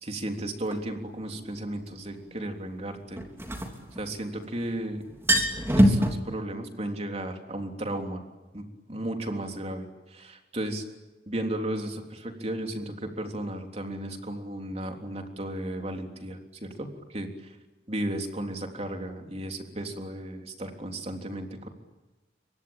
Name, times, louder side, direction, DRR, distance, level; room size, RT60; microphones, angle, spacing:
voice 1, 0.0-3.2 3.9-5.0 5.7-8.2 8.5-10.8 11.3-17.6 17.9-21.7, right 1 dB, 35° right, 4 dB, 3.5 m, -34 dB
sound 1, 0.7-0.8 3.2-4.5 4.8-4.9 5.1-6.1, equal, 15° right, 3.3 m, -22 dB
28.0 x 24.0 x 9.0 m, 1.1 s
head